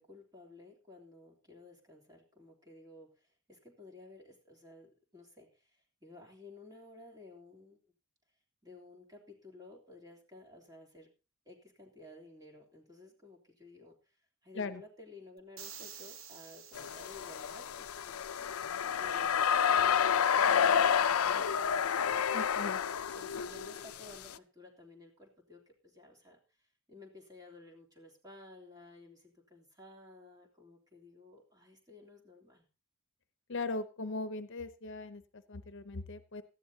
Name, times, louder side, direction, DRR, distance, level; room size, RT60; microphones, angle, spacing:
voice 1, 0.0-7.8 8.6-11.1 11.4-14.2 14.4-22.1 23.1-32.7, left 2 dB, 20° right, 0 dB, 3.2 m, -54 dB
sound 1, 15.6-17.9, right 8 dB, 65° right, 1.2 m, -50 dB
sound 2, 16.8-24.3, left 7 dB, 90° left, 0.5 m, -30 dB
voice 2, 22.3-22.8 33.5-36.4, left 3 dB, 60° left, 11 dB, 0.9 m, -39 dB
18.0 x 13.0 x 2.8 m, 0.32 s
head